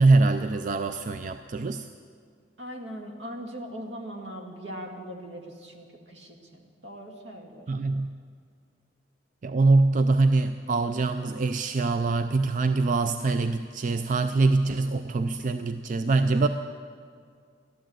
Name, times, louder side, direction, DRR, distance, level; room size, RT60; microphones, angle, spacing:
voice 1, 0.0-1.9 7.7-8.1 9.4-16.5, right 3 dB, 45° right, 9 dB, 0.4 m, -23 dB
voice 2, 2.6-7.7, equal, 75° right, 2 dB, 1.9 m, -40 dB
13.5 x 11.5 x 7.6 m, 2.1 s
head